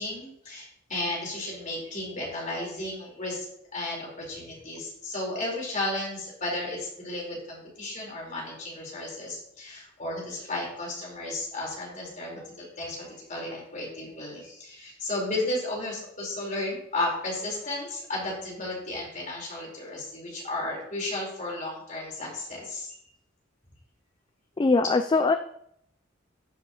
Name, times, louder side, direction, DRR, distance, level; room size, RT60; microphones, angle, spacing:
voice 1, 0.0-3.5 3.7-23.0, left 2 dB, 40° left, -3 dB, 4.0 m, -34 dB
voice 2, 24.6-25.4, left 3 dB, 25° left, 9 dB, 0.3 m, -21 dB
14.0 x 7.7 x 2.9 m, 0.73 s
head